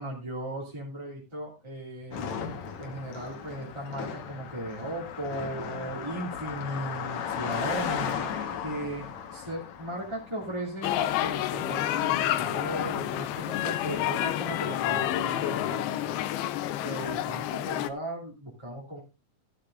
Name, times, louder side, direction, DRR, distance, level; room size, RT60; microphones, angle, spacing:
voice 1, 0.0-2.3 2.8-8.1 8.6-16.2 16.8-19.0, right 1 dB, 10° right, -3 dB, 1.8 m, -37 dB
Car passing by, 2.1-11.7, left 7 dB, 60° left, 2.1 m, -36 dB
sound 1, 10.8-17.9, left 13 dB, 80° left, 2.7 m, -29 dB
15.5 x 11.5 x 2.5 m, 0.26 s
omnidirectional pair, 4.5 m